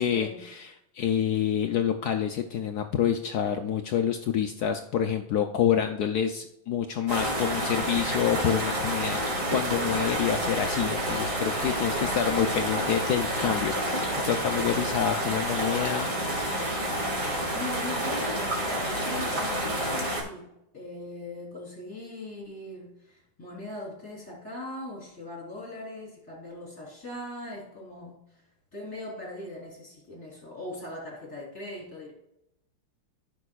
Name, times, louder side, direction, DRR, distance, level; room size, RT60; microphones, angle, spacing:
voice 1, 0.0-16.1, left 9 dB, 75° left, 6 dB, 0.9 m, -27 dB
sound 1, 7.1-20.2, right 1 dB, 40° right, 2.4 m, -29 dB
voice 2, 11.9-12.4 17.2-28.4 28.7-32.1, left 2 dB, 10° left, -5 dB, 3.1 m, -40 dB
14.0 x 6.1 x 2.3 m, 0.84 s
omnidirectional pair, 2.2 m